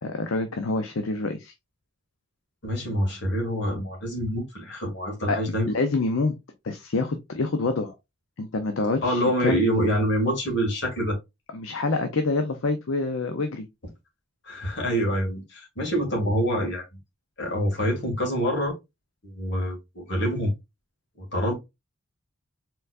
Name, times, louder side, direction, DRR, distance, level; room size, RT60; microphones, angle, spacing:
voice 1, 0.0-1.5 5.3-5.4 5.7-6.3 6.6-7.9 8.4-9.6 11.5-13.7, left 3 dB, 80° left, 0.6 m, -26 dB
voice 2, 2.6-5.7 9.0-11.2 14.4-16.8 17.4-18.7 19.2-20.5 21.2-21.5, equal, 55° left, 2.2 m, -26 dB
4.4 x 3.9 x 2.4 m
head